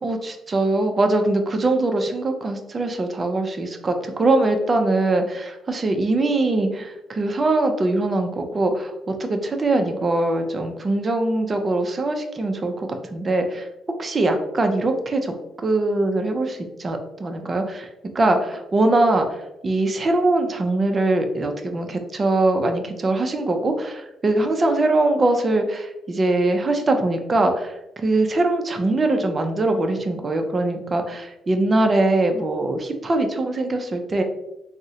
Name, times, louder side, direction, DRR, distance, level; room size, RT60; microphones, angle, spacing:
voice 1, 0.0-13.7 14.0-15.3 15.6-17.9 18.1-19.4 19.6-34.2, right 2 dB, 35° right, 5 dB, 0.4 m, -22 dB
3.6 x 2.1 x 2.7 m, 0.91 s
cardioid pair, 90°, 0 cm